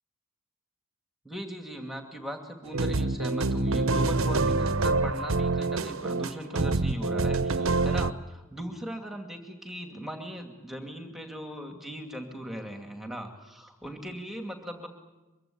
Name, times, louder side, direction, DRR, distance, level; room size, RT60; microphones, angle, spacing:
voice 1, 1.2-14.9, equal, ahead, 3 dB, 2.5 m, -39 dB
sound 1, 2.7-8.1, right 3 dB, 75° right, 0.9 m, -26 dB
24.0 x 24.0 x 8.7 m, 1.1 s
head